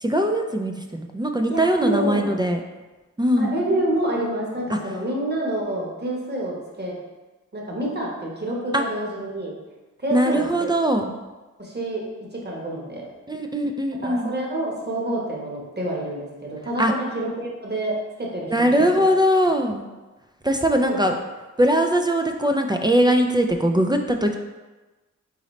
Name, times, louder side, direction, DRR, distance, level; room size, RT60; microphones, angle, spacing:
voice 1, 0.0-2.6 3.2-3.5 8.7-8.8 10.1-11.1 13.3-14.3 16.8-16.9 18.5-19.9 20.4-21.1 21.6-24.4, equal, 15° right, 3 dB, 0.3 m, -21 dB
voice 2, 1.5-2.3 3.4-7.0 7.5-9.6 10.0-10.7 11.6-12.0 12.3-13.0 14.0-18.7 20.8-21.1, right 1 dB, 30° right, -3 dB, 1.2 m, -27 dB
4.0 x 3.8 x 3.1 m, 1.2 s
cardioid pair, 60°, 32 cm